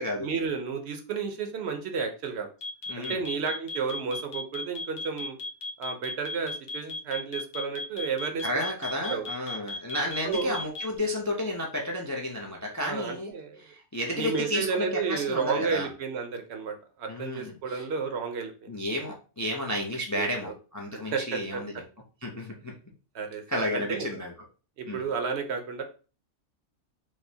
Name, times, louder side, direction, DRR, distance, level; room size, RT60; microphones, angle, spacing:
voice 1, 0.0-2.5 3.0-5.4 5.8-8.5 9.1-9.3 10.2-10.6 12.8-13.7 14.1-18.7 20.1-20.5 20.9-21.6 23.1-24.1 24.8-25.8, right 5 dB, 70° right, 6 dB, 0.9 m, -32 dB
sound 1, 2.6-11.0, left 3 dB, 75° left, 1.1 m, -35 dB
voice 2, 2.9-3.2 8.4-13.3 13.6-15.9 17.1-17.8 18.7-21.7 22.2-22.7 23.5-24.3 24.9-25.0, left 1 dB, 25° left, 0 dB, 0.4 m, -32 dB
4.7 x 2.1 x 2.7 m, 0.35 s
omnidirectional pair, 1.2 m